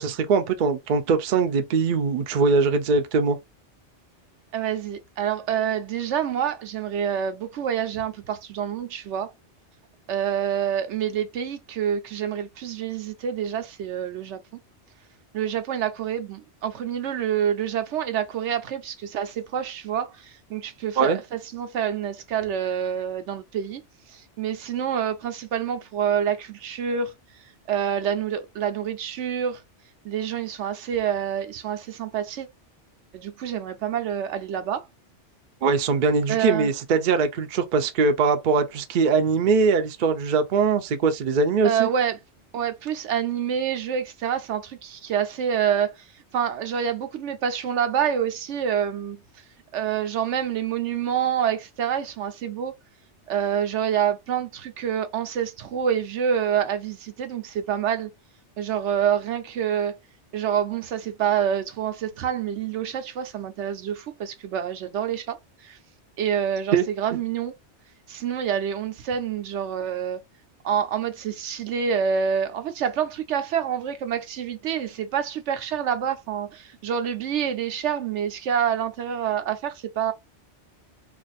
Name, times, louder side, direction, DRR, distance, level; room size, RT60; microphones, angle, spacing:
voice 1, 0.0-3.4 21.0-21.2 35.6-41.9 66.7-66.9, right 4 dB, 55° right, 0.6 m, -21 dB
voice 2, 4.5-9.3 10.1-14.4 15.3-23.8 24.1-27.1 27.7-29.6 30.0-32.5 33.1-34.9 36.3-36.7 41.6-42.2 42.5-46.0 46.3-49.2 49.7-52.7 53.3-58.1 58.6-60.0 60.3-65.4 65.6-65.8 66.2-67.5 68.1-70.2 70.6-80.1, right 8 dB, 75° right, 0.9 m, -27 dB
2.5 x 2.5 x 3.9 m
omnidirectional pair, 1.2 m